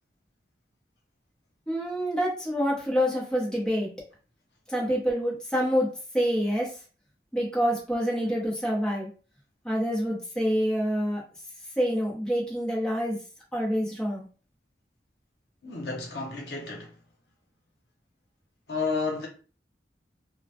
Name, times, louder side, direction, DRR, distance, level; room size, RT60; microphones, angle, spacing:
voice 1, 1.7-3.9 4.7-5.9 6.1-6.7 7.3-9.1 9.6-11.2 11.8-13.2 13.5-14.2, equal, 5° left, 0.7 m, -26 dB
voice 2, 15.6-17.0 18.7-19.3, left 4 dB, 70° left, 0.7 m, -31 dB
2.2 x 2.0 x 2.7 m
head